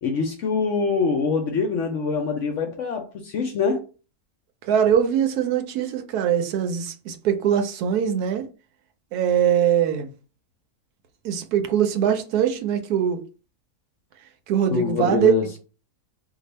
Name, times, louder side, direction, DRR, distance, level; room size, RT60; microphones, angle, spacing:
voice 1, 0.0-3.8 14.7-15.6, left 5 dB, 65° left, 0.8 m, -24 dB
voice 2, 4.6-8.4 9.1-10.1 11.2-13.2 14.5-15.3, right 9 dB, 75° right, 1.1 m, -22 dB
2.6 x 2.3 x 4.1 m
omnidirectional pair, 1.7 m